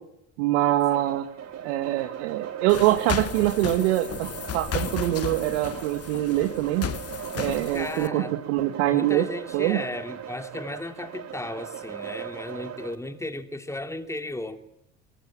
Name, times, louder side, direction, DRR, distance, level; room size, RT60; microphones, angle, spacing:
voice 1, 0.4-1.3 1.6-6.9 7.3-8.2 8.5-9.2 9.5-9.8, right 15 dB, 75° right, 2.3 m, -24 dB
sound 1, 0.9-12.9, right 9 dB, 50° right, 5.7 m, -39 dB
sound 2, 2.7-8.1, left 9 dB, 40° left, 1.9 m, -34 dB
voice 2, 7.7-8.4 8.9-14.6, left 2 dB, 10° left, 3.0 m, -35 dB
27.5 x 22.5 x 8.9 m
hypercardioid pair, 65°, 36 cm